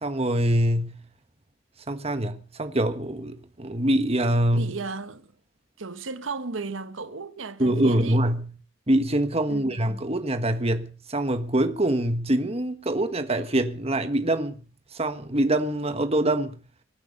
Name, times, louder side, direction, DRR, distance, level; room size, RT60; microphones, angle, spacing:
voice 1, 0.0-0.9 1.9-4.7 7.6-8.5 8.9-14.6 14.9-16.6, right 1 dB, 30° right, 1.5 m, -24 dB
voice 2, 4.5-5.3 5.8-8.2 9.5-9.8, right 4 dB, 85° right, 1.2 m, -35 dB
23.5 x 9.6 x 5.4 m
head